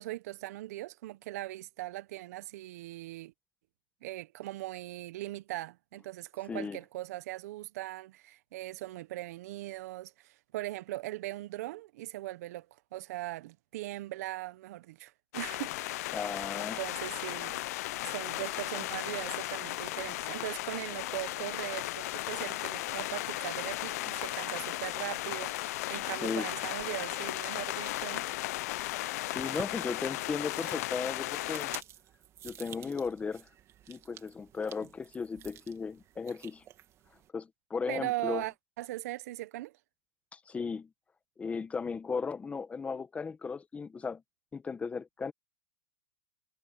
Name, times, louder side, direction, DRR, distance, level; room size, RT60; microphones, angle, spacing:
voice 1, 0.0-3.3 4.0-12.7 12.9-16.1 16.8-17.7 18.1-28.3 37.9-39.7, right 17 dB, 65° right, 1.3 m, -39 dB
sound 1, 15.3-31.8, left 17 dB, 65° left, 0.6 m, -36 dB
voice 2, 16.1-16.8 26.2-26.5 29.3-31.7 32.4-33.5 33.9-36.6 37.3-38.4 40.3-40.9 41.4-44.2 44.5-45.3, left 5 dB, 15° left, 1.5 m, -36 dB
sound 2, 27.6-37.3, right 11 dB, 30° right, 2.6 m, -52 dB
hypercardioid pair, 125°, 9 cm